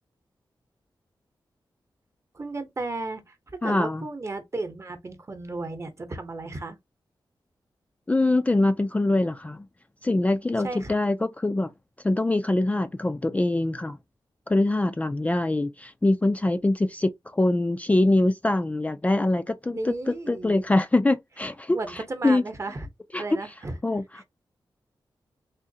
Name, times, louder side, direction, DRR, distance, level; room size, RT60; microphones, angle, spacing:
voice 1, 2.3-6.8 10.6-11.0 19.7-20.7 21.7-22.9 23.2-23.8 24.2-24.3, right 2 dB, 35° right, 0.9 m, -34 dB
voice 2, 3.6-4.1 8.1-9.7 10.0-11.7 12.0-14.0 14.5-22.4 23.1-23.2 23.8-24.0, left 2 dB, 15° left, 0.3 m, -24 dB
3.6 x 3.0 x 2.7 m
wide cardioid pair, 95°, 8 cm